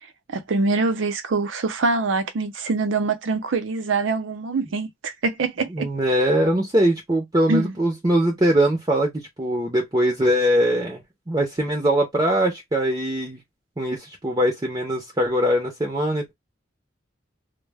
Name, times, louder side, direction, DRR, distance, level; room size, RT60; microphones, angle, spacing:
voice 1, 0.3-5.9 7.5-7.8, right 3 dB, 85° right, 0.6 m, -24 dB
voice 2, 5.7-13.4 13.8-16.3, right 1 dB, 20° right, 0.6 m, -22 dB
2.1 x 2.0 x 3.3 m
head